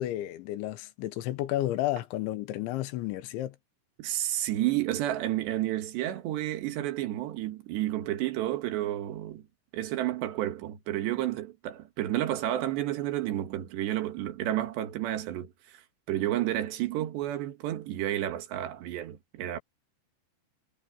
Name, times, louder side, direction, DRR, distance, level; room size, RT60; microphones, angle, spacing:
voice 1, 0.0-3.6, left 14 dB, 80° left, 3.4 m, -32 dB
voice 2, 4.0-9.4 9.7-15.8 16.1-19.6, right 13 dB, 65° right, 3.7 m, -31 dB
omnidirectional pair, 5.6 m